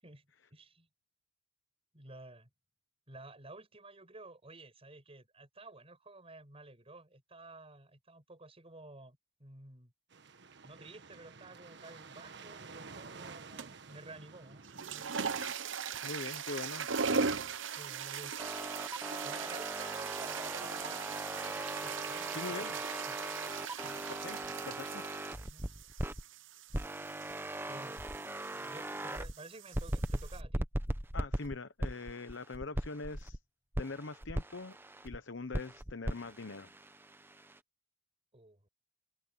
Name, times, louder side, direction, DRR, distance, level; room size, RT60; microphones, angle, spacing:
voice 1, 0.0-0.9 1.9-2.5 3.1-9.9 10.6-15.2 17.8-18.4 19.2-23.2 25.5-25.7 27.7-28.0 28.4-30.6 38.3-38.7, right 2 dB, 30° right, 6.2 m, -52 dB
sound 1, 10.1-15.2, right 4 dB, 65° right, 1.4 m, -51 dB
sound 2, 13.6-13.9 14.6-30.4, right 5 dB, 85° right, 0.9 m, -40 dB
voice 2, 16.0-17.4 22.3-22.7 24.2-24.4 24.6-25.0 31.1-33.4 33.8-34.8 35.0-36.7, left 3 dB, 70° left, 0.9 m, -42 dB
sound 3, 18.4-26.2 26.7-29.3 29.7-33.4 33.7-35.2 35.5-37.6, right 1 dB, 10° right, 1.0 m, -39 dB
open air
head